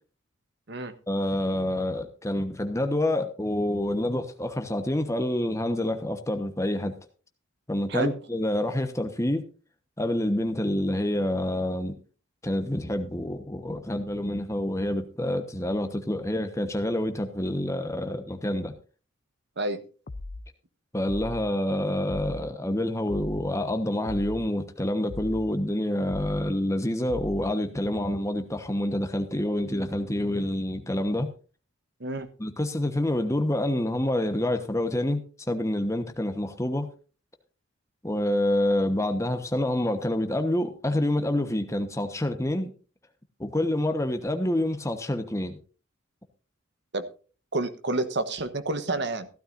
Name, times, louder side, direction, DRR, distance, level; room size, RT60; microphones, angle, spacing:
voice 1, 1.1-6.9 7.7-9.4 10.0-11.9 12.4-18.7 20.9-31.3 32.4-36.9 38.0-42.7 43.4-45.6, left 1 dB, 15° left, 7 dB, 1.1 m, -27 dB
sound 1, 20.1-20.5 21.1-21.5 22.1-22.5 23.1-23.5 24.0-24.5 25.1-25.5 26.1-26.5 27.1-27.5, left 2 dB, 40° left, 0.5 m, -38 dB
voice 2, 47.5-49.3, right 2 dB, 55° right, 11 dB, 1.2 m, -29 dB
15.5 x 12.5 x 2.6 m, 0.37 s
head